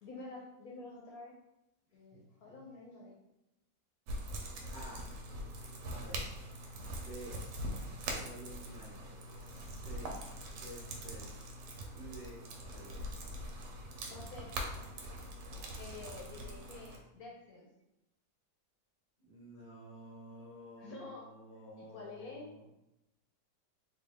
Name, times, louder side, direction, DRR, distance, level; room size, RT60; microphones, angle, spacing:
voice 1, 0.0-1.3 1.9-3.1 14.1-14.5 15.8-17.7 20.8-21.3 21.8-22.5, left 3 dB, 65° left, -2 dB, 1.0 m, -49 dB
sound 1, 4.1-17.0, right 1 dB, 90° right, 1.3 m, -43 dB
voice 2, 4.7-5.0 5.8-6.4 6.9-7.4 8.2-9.0 9.3-10.2 10.5-11.5 11.9-13.1 19.3-22.7, right 1 dB, 15° right, -7 dB, 0.6 m, -51 dB
3.4 x 2.3 x 3.4 m, 0.88 s
omnidirectional pair, 1.9 m